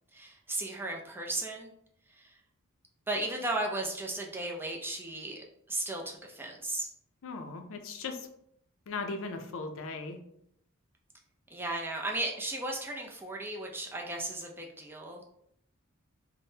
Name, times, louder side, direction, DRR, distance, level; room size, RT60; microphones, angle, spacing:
voice 1, 0.1-1.7 2.1-2.4 3.1-6.9 11.5-15.2, right 2 dB, 10° right, -1 dB, 0.4 m, -35 dB
voice 2, 7.2-8.3 8.9-10.2, left 3 dB, 65° left, 6 dB, 0.5 m, -38 dB
3.4 x 2.1 x 2.7 m, 0.72 s
head